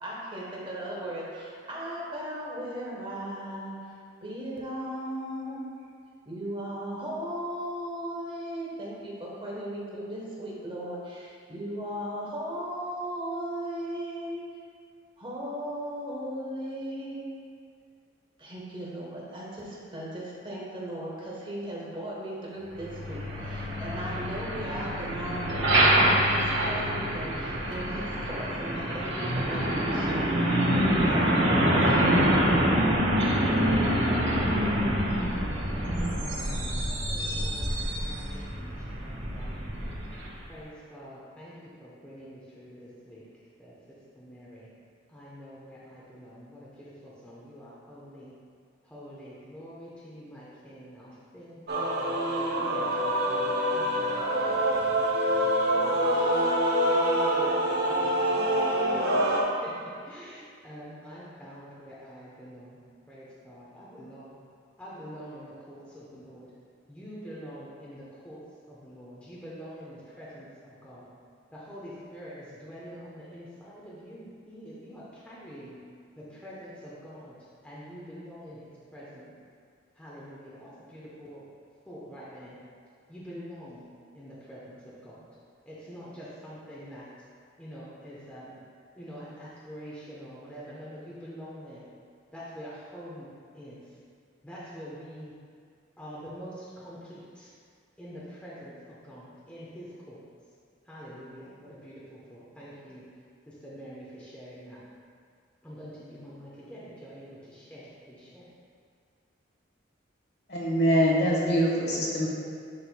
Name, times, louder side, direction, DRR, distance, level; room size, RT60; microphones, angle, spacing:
voice 1, 0.0-3.8 4.2-5.7 6.2-14.4 15.2-17.4 18.4-32.0, right 1 dB, 25° right, -5 dB, 1.1 m, -37 dB
Truck, 22.8-40.5, equal, 75° right, 1.3 m, -26 dB
voice 2, 37.0-39.7 40.5-43.2 43.6-43.7 44.1-44.7 45.1-48.3 48.9-51.6 52.0-54.2 54.5-56.3 56.8-59.4 59.6-62.8 63.1-64.4 64.8-66.5 66.9-68.4 68.7-71.1 71.5-75.8 76.2-77.4 77.6-79.3 80.0-81.4 81.9-82.6 83.1-83.9 84.1-85.2 85.7-87.1 87.6-88.6 89.0-91.9 92.3-93.8 94.4-95.3 96.0-97.5 98.0-100.2 100.9-103.0 103.5-104.8 105.6-108.5, equal, 5° left, -8 dB, 0.8 m, -45 dB
Male singing / Female singing / Musical instrument, 51.7-59.4, right 1 dB, 55° right, 0.8 m, -25 dB
voice 3, 110.5-112.3, equal, 55° left, -4 dB, 1.3 m, -24 dB
11.0 x 4.3 x 2.2 m, 2.2 s
head